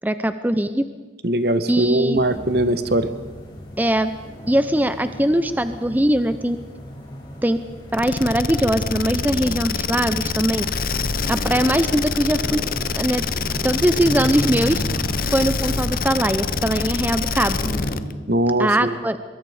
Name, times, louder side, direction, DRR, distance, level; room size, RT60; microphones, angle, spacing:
voice 1, 0.0-0.9 1.7-2.2 3.8-4.1 4.5-6.7 7.4-7.6 7.9-10.7 11.3-12.6 13.0-13.2 13.6-14.8 15.3-17.7 18.6-19.2, right 1 dB, 10° right, 11 dB, 0.7 m, -21 dB
voice 2, 1.2-3.1 18.3-19.0, right 1 dB, 60° right, 12 dB, 1.2 m, -21 dB
sound 1, 2.1-18.0, equal, 25° left, 5.7 m, -34 dB
sound 2, 7.9-18.1, left 5 dB, 50° left, 0.8 m, -25 dB
24.5 x 22.5 x 5.0 m, 1.3 s
head